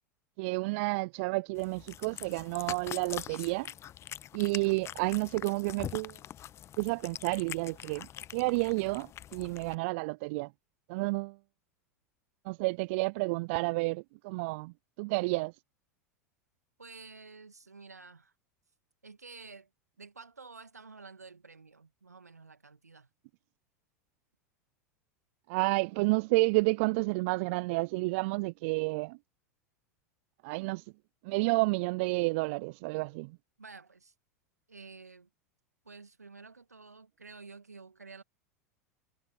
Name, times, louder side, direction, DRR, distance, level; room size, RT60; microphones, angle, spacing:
voice 1, 0.4-3.7 4.3-6.2 6.8-10.5 10.9-11.4 12.5-15.5 25.5-29.2 30.4-30.8 31.2-33.4, right 26 dB, 55° right, 0.4 m, -30 dB
Cat, 1.6-9.7, left 11 dB, 30° left, 0.9 m, -44 dB
voice 2, 16.8-18.3 19.0-19.7 20.0-23.1 33.6-34.1 34.7-35.3 35.8-38.2, right 4 dB, 90° right, 1.8 m, -51 dB
figure-of-eight pair, 90°, 8 cm